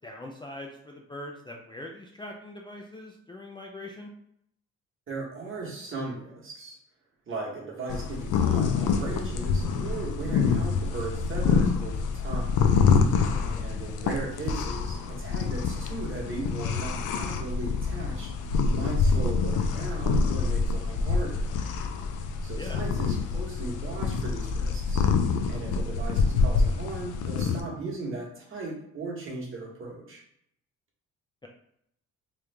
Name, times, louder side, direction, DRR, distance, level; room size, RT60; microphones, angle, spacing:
voice 1, 0.0-4.1 13.3-13.7 22.6-22.8, left 1 dB, 15° left, 0 dB, 0.4 m, -42 dB
voice 2, 5.1-6.8 7.3-12.7 13.5-18.3 18.7-21.5 22.4-25.1 25.5-30.2, right 3 dB, 45° right, -3 dB, 1.3 m, -37 dB
sound 1, 7.9-27.6, left 5 dB, 80° left, 0.5 m, -26 dB
3.2 x 2.4 x 3.3 m, 0.73 s
cardioid pair, 90°, 30 cm